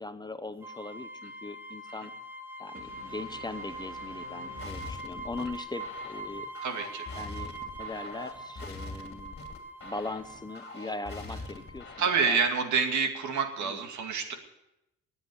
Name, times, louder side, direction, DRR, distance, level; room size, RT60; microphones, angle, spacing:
voice 1, 0.0-2.1 2.6-6.5 7.2-9.4 9.8-12.4 13.6-13.8, left 2 dB, 15° left, 10 dB, 0.8 m, -40 dB
sound 1, 0.6-12.0, right 1 dB, 5° right, 2.5 m, -43 dB
sound 2, 2.7-5.7, right 5 dB, 45° right, 2.4 m, -51 dB
sound 3, 4.6-12.5, left 3 dB, 35° left, 2.8 m, -44 dB
voice 2, 6.6-7.1 12.0-14.3, right 5 dB, 70° right, 5 dB, 2.3 m, -28 dB
19.5 x 8.2 x 6.9 m, 0.89 s
cardioid pair, 90°, 30 cm